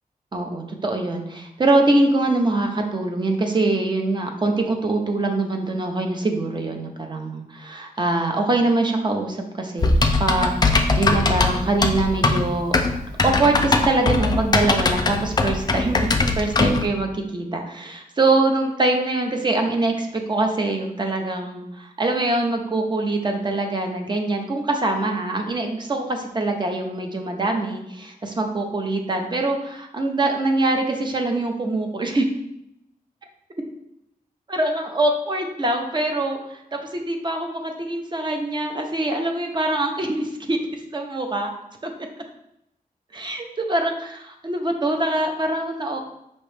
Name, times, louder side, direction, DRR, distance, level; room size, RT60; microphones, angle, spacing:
voice 1, 0.3-12.8 13.2-16.1 16.3-32.3 34.5-41.5 41.8-41.9 43.1-46.0, right 2 dB, 30° right, 3 dB, 0.5 m, -23 dB
Typing, 9.8-16.9, left 3 dB, 25° left, 0.3 m, -20 dB
5.2 x 3.0 x 3.2 m, 0.80 s
wide cardioid pair, 170°, 15 cm